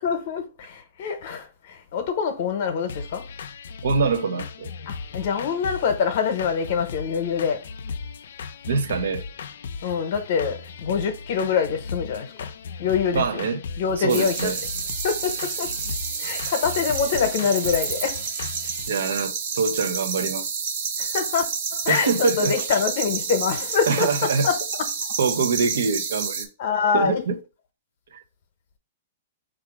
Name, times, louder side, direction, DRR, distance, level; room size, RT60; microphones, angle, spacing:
voice 1, 0.0-3.2 4.9-7.6 9.8-12.5 12.8-13.4 13.8-14.5 15.0-15.7 16.2-18.2 21.0-24.6 26.6-27.2, left 6 dB, 55° left, 0.8 m, -25 dB
sound 1, 2.9-18.9, left 5 dB, 75° left, 0.4 m, -37 dB
voice 2, 3.8-4.7 8.6-9.2 13.1-13.6 14.0-14.6 18.9-20.4 21.9-22.7 23.9-24.5 25.2-26.5 26.9-27.4 28.1-28.2, right 5 dB, 80° right, 0.6 m, -24 dB
sound 2, 14.1-26.4, right 6 dB, 50° right, 0.8 m, -29 dB
4.7 x 2.4 x 4.7 m
hypercardioid pair, 150°, 0 cm